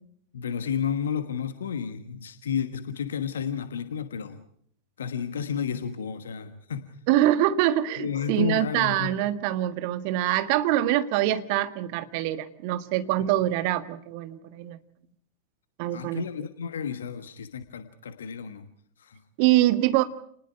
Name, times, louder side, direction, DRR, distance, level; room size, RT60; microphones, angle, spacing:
voice 1, 0.3-4.4 5.0-7.0 8.0-9.1 13.2-13.3 15.9-18.7 19.0-19.2, left 7 dB, 65° left, 10 dB, 1.4 m, -32 dB
voice 2, 7.1-14.8 15.8-16.2 19.4-20.0, right 14 dB, 45° right, 11 dB, 1.6 m, -24 dB
29.5 x 20.0 x 4.8 m, 0.64 s
figure-of-eight pair, 90°, 0 cm